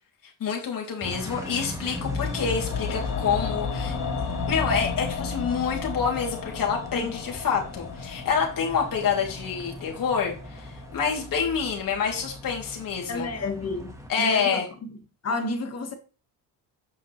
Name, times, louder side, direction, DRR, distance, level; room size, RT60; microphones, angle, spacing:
voice 1, 0.4-3.9 4.5-13.3 14.1-14.7, left 6 dB, 55° left, 3.0 m, -27 dB
sound 1, 1.0-14.1, equal, 10° right, 1.5 m, -37 dB
sound 2, 1.9-12.0 12.3-12.4, left 7 dB, 70° left, 1.5 m, -34 dB
voice 2, 13.1-14.9 15.2-15.9, left 2 dB, 40° left, 1.7 m, -31 dB
8.4 x 5.8 x 3.2 m
cardioid pair, 110°, 40 cm